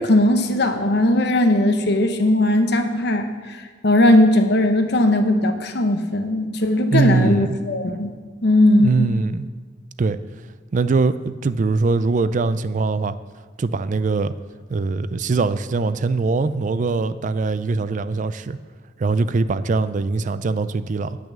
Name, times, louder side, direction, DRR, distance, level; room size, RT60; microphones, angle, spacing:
voice 1, 0.0-8.1 8.4-9.1, left 1 dB, 65° left, 6 dB, 1.0 m, -18 dB
voice 2, 6.9-7.5 8.8-9.5 10.0-10.2 10.7-13.1 13.6-14.3 14.7-18.6 19.0-21.2, right 3 dB, 45° right, 14 dB, 0.4 m, -22 dB
10.5 x 6.2 x 7.3 m, 1.5 s
head